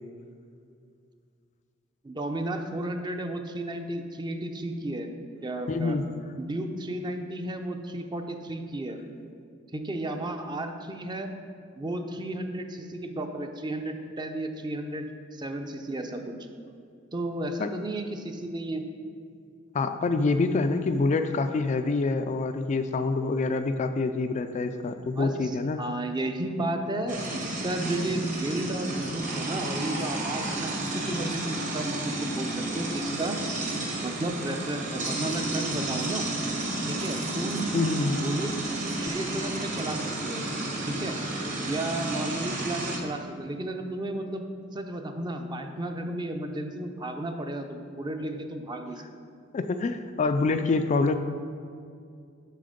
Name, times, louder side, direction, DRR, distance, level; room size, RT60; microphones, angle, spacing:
voice 1, 2.0-5.1 5.4-6.0 6.4-9.0 9.7-11.3 11.8-16.4 17.1-18.8 25.1-25.5 25.8-33.4 34.0-36.3 36.8-37.7 38.1-38.6 39.0-40.4 40.9-41.2 41.7-44.4 44.7-49.0, right 1 dB, 20° right, 5 dB, 0.5 m, -33 dB
voice 2, 5.7-6.0 17.6-17.7 19.7-25.8 37.7-38.2 49.5-51.2, left 3 dB, 35° left, 8 dB, 0.3 m, -26 dB
sound 1, 27.1-43.0, right 2 dB, 40° right, 1.2 m, -32 dB
7.6 x 5.9 x 5.1 m, 2.3 s
head